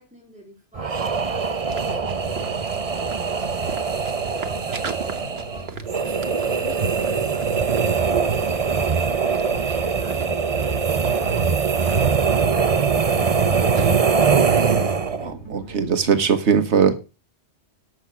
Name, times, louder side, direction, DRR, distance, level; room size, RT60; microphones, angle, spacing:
voice 1, 0.0-3.9 4.4-10.9 13.0-13.4, equal, 5° right, -3 dB, 3.7 m, -48 dB
sound 1, 0.8-15.3, right 5 dB, 35° right, 0.8 m, -22 dB
sound 2, 1.4-14.1, right 5 dB, 65° right, 1.4 m, -40 dB
sound 3, 1.6-16.3, right 1 dB, 85° left, 2.8 m, -40 dB
voice 2, 15.2-16.9, right 6 dB, 90° right, 10 dB, 1.5 m, -20 dB
12.5 x 6.5 x 6.0 m, 0.31 s
omnidirectional pair, 1.1 m